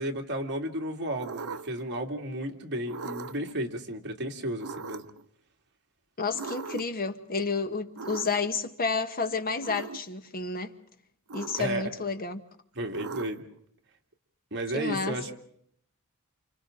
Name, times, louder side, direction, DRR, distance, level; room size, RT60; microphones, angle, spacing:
voice 1, 0.0-5.0 11.6-11.8 12.8-13.4 14.5-15.3, right 1 dB, 55° right, 2.6 m, -33 dB
sound 1, 1.2-1.9 2.9-3.5 4.6-5.2 6.3-7.0 8.0-8.6 9.6-10.0 11.3-11.9 12.9-13.6, right 4 dB, 70° right, 0.9 m, -39 dB
voice 2, 6.2-10.7 11.3-12.4 14.7-15.2, left 4 dB, 45° left, 1.2 m, -30 dB
29.0 x 28.5 x 3.9 m
head